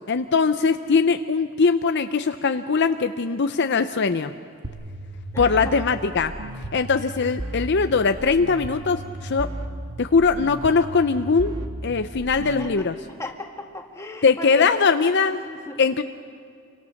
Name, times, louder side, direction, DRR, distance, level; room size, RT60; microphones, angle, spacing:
voice 1, 0.1-4.3 5.4-6.3 6.7-9.5 10.0-11.5 11.8-12.9 14.2-15.4 15.8-16.0, left 5 dB, 50° left, 9 dB, 0.6 m, -21 dB
sound 1, 4.6-12.7, right 1 dB, 90° right, 1.7 m, -35 dB
voice 2, 5.3-5.7 12.4-12.9 13.2-14.7 15.4-15.8, left 2 dB, 15° left, 2 dB, 2.0 m, -35 dB
27.0 x 24.5 x 6.5 m, 2.3 s
head